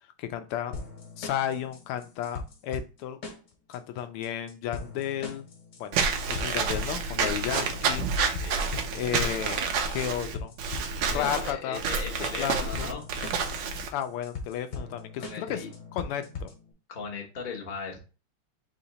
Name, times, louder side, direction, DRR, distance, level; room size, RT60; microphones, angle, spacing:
voice 1, 0.2-0.8 1.2-3.2 3.7-5.5 5.8-6.0 6.3-8.1 8.9-10.5 11.1-11.8 12.2-12.9 13.9-15.6 15.9-16.5, left 10 dB, 85° left, 9 dB, 1.5 m, -33 dB
sound 1, 0.7-16.7, left 4 dB, 65° left, 1.8 m, -41 dB
Walk footsteps / Squeak, 5.9-13.9, right 5 dB, 70° right, 1.1 m, -29 dB
voice 2, 8.4-8.8 11.1-13.0 15.2-15.7 16.9-18.0, left 5 dB, 45° left, -1 dB, 0.6 m, -38 dB
4.2 x 2.8 x 3.9 m, 0.33 s
omnidirectional pair, 2.4 m